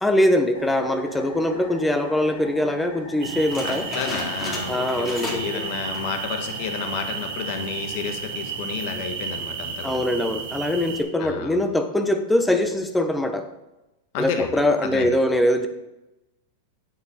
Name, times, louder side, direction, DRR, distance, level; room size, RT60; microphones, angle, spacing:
voice 1, 0.0-3.9 4.7-5.7 9.8-13.5 14.2-15.7, left 1 dB, 5° left, 8 dB, 0.9 m, -22 dB
sound 1, 0.5-9.4, left 3 dB, 85° left, 2.1 m, -43 dB
sound 2, 3.2-11.0, right 6 dB, 65° right, 1.5 m, -33 dB
sound 3, 3.5-5.6 5.8-6.2 6.7-6.8 7.5-7.8, left 2 dB, 25° left, 3.5 m, -34 dB
voice 2, 3.6-10.1 11.2-11.6 14.1-14.5 14.8-15.2, left 6 dB, 55° left, 6 dB, 1.4 m, -31 dB
8.7 x 7.6 x 4.3 m, 0.95 s
hypercardioid pair, 130°, 0 cm